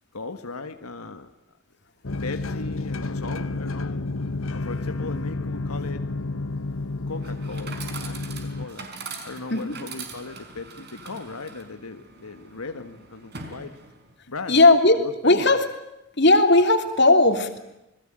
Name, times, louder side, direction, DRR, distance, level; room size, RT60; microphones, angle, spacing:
voice 1, 0.1-1.3 2.2-4.1 4.5-6.0 7.0-8.2 8.6-8.9 9.2-13.8 14.3-14.6 15.0-15.6, left 3 dB, 90° left, 7 dB, 1.6 m, -37 dB
sound 1, 2.0-8.7, left 3 dB, 70° left, 1.2 m, -30 dB
Chatter / Coin (dropping), 7.1-14.1, right 4 dB, 45° right, 4.9 m, -41 dB
voice 2, 14.5-15.6 16.2-17.6, left 2 dB, 50° left, 6 dB, 3.1 m, -17 dB
28.5 x 21.0 x 9.0 m, 0.90 s
head